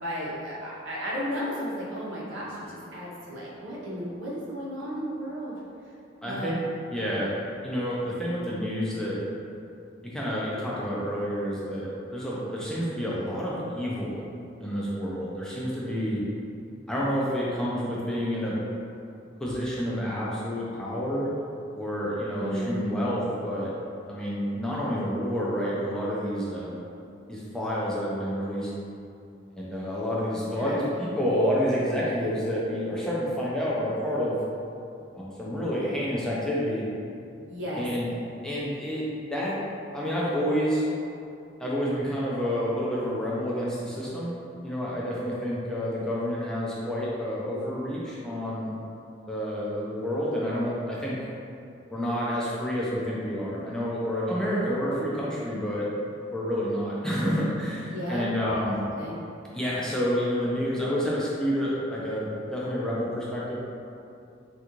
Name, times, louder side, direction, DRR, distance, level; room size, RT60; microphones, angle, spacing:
voice 1, 0.0-5.6 6.2-6.7 22.4-23.0 30.5-30.7 37.5-37.9 57.9-58.2 58.7-59.2, equal, 80° right, -6 dB, 0.8 m, -34 dB
voice 2, 6.2-6.6 6.9-7.3 7.6-9.2 10.1-14.2 14.6-16.2 16.9-18.6 19.4-21.3 21.7-23.7 24.1-26.8 27.3-28.7 29.6-34.4 35.2-36.9 37.7-38.1 38.4-39.6 39.9-40.9 41.6-44.4 44.6-48.7 49.3-51.2 51.9-55.9 56.3-58.8 59.5-63.6, equal, 5° left, -7 dB, 0.4 m, -29 dB
3.4 x 2.4 x 2.9 m, 2.6 s
head